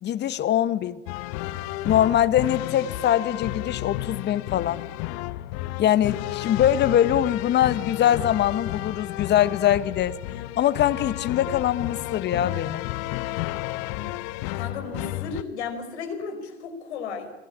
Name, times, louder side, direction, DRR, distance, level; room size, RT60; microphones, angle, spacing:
voice 1, 0.0-1.0 1.8-4.8 5.8-10.2 10.6-12.9, left 11 dB, 30° left, 1.2 m, -23 dB
sound 1, 1.1-15.4, left 16 dB, 45° left, 1.0 m, -32 dB
voice 2, 14.5-17.3, left 5 dB, 65° left, 5.2 m, -34 dB
27.5 x 20.5 x 8.8 m
figure-of-eight pair, 95°, 36 cm